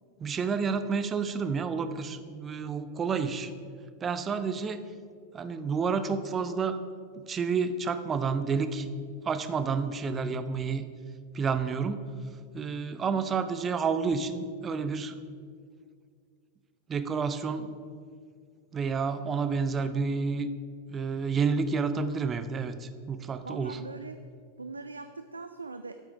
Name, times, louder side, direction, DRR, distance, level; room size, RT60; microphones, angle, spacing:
voice 1, 0.2-3.5 4.0-4.8 5.3-6.8 7.2-8.9 9.2-10.8 11.3-12.0 12.5-15.2 16.9-17.8 18.7-20.5 20.9-23.8, right 5 dB, 20° right, 11 dB, 0.6 m, -30 dB
voice 2, 13.0-13.3 23.4-24.2 24.6-26.0, right 3 dB, 80° right, 9 dB, 0.3 m, -41 dB
8.3 x 8.2 x 5.0 m, 2.1 s
figure-of-eight pair, 90°, 0 cm